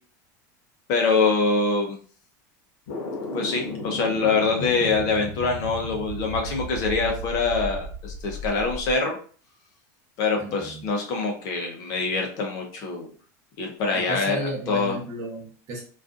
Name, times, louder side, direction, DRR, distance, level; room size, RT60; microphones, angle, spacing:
voice 1, 0.9-2.0 3.3-9.2 10.2-13.1 13.6-14.4 14.7-15.0, left 4 dB, 40° left, 1 dB, 0.6 m, -24 dB
sound 1, 2.9-8.9, left 1 dB, 70° left, 0.8 m, -34 dB
voice 2, 10.4-10.8 13.9-15.8, right 1 dB, 35° right, -1 dB, 0.8 m, -34 dB
2.5 x 2.3 x 2.4 m, 0.43 s
supercardioid pair, 160°, 9 cm